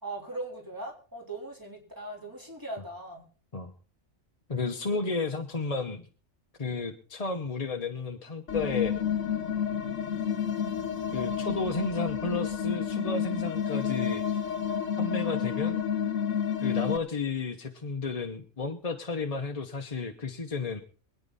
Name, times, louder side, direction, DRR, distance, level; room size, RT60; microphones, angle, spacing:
voice 1, 0.0-3.2, right 2 dB, 15° right, -1 dB, 3.8 m, -39 dB
voice 2, 4.5-6.0 6.6-9.0 11.1-14.4 15.0-15.9 16.6-20.8, left 4 dB, 35° left, 4 dB, 0.9 m, -32 dB
sound 1, 8.5-17.0, left 8 dB, 70° left, 1.4 m, -30 dB
24.0 x 9.3 x 4.1 m, 0.40 s
omnidirectional pair, 1.3 m